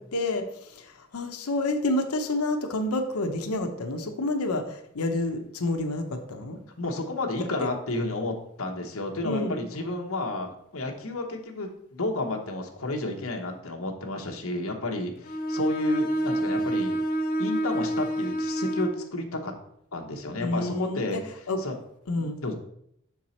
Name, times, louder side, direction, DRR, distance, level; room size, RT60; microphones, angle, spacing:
voice 1, 0.1-6.6 7.6-7.7 9.2-9.6 20.4-21.2 21.5-21.6 22.1-22.4, left 2 dB, 90° left, 6 dB, 0.8 m, -29 dB
voice 2, 6.8-17.0 17.4-19.5 19.9-21.2 21.6-21.8 22.2-22.5, left 2 dB, 70° left, 2 dB, 1.1 m, -31 dB
Bowed string instrument, 15.2-19.0, right 1 dB, 40° left, 0.8 m, -28 dB
6.7 x 4.7 x 4.2 m, 0.72 s
head